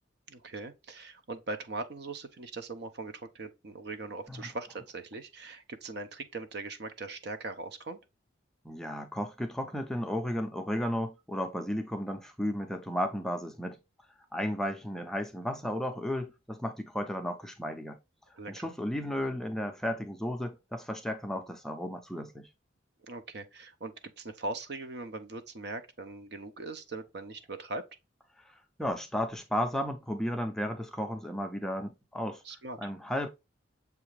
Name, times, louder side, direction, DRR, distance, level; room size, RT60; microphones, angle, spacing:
voice 1, 0.3-8.0 18.3-18.7 23.0-27.9 32.4-32.9, right 3 dB, 60° right, 0.6 m, -40 dB
voice 2, 8.6-13.8 14.3-18.0 18.5-22.5 28.4-32.4 32.8-33.3, equal, 5° left, 0.4 m, -34 dB
6.7 x 2.4 x 3.1 m
head